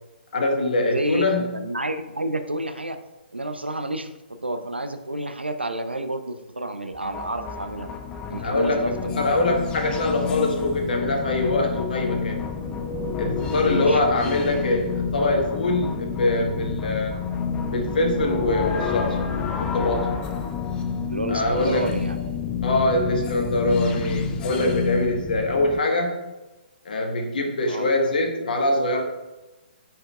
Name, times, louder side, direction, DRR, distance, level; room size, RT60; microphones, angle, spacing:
voice 1, 0.3-1.5 8.4-12.4 13.2-17.2 17.7-19.2 19.6-20.1 21.3-21.9 22.6-26.2 26.8-29.0, left 2 dB, 55° left, 2 dB, 1.3 m, -23 dB
voice 2, 0.9-3.0 3.3-4.1 4.4-7.9 8.3-9.3 13.6-14.0 21.1-22.2 27.7-27.9, right 1 dB, 85° right, 8 dB, 0.6 m, -29 dB
sound 1, 6.9-25.8, left 6 dB, 15° left, 0.4 m, -29 dB
9.2 x 4.5 x 2.4 m, 1.1 s
figure-of-eight pair, 130°, 6 cm